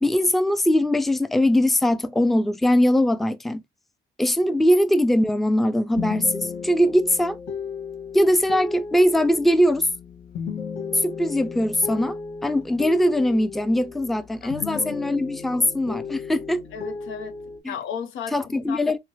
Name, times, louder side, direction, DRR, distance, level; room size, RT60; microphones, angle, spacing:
voice 1, 0.0-3.6 4.2-7.4 8.1-9.9 10.9-16.7 17.6-17.7 18.3-19.0, left 1 dB, ahead, 0.4 m, -21 dB
sound 1, 5.9-14.2 14.5-17.6, left 5 dB, 70° left, 1.7 m, -34 dB
voice 2, 14.6-14.9 16.7-17.4 17.7-19.0, left 7 dB, 90° left, 0.8 m, -35 dB
5.7 x 2.1 x 2.9 m
cardioid pair, 90°, 20 cm